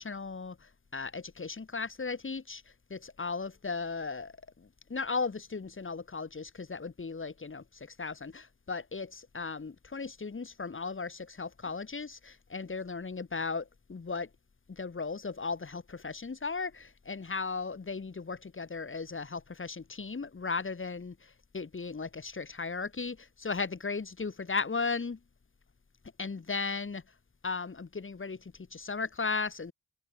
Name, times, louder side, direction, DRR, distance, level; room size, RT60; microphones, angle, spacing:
voice 1, 0.0-2.6 2.9-14.3 14.7-25.2 26.2-27.0 27.4-29.7, left 4 dB, 35° left, 3.7 m, -36 dB
supercardioid pair, 50°, 33 cm